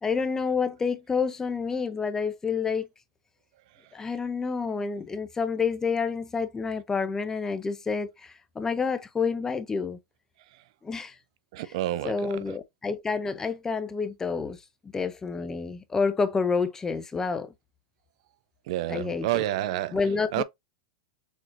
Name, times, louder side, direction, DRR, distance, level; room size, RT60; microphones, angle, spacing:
voice 1, 0.0-2.9 3.9-10.0 10.8-11.1 12.0-14.6 14.9-17.5 18.9-19.4 19.9-20.4, left 5 dB, 15° left, 0.6 m, -28 dB
voice 2, 11.5-12.4 18.7-20.0 20.3-20.4, right 14 dB, 65° right, 0.5 m, -29 dB
6.5 x 3.0 x 2.5 m
hypercardioid pair, 125°, 4 cm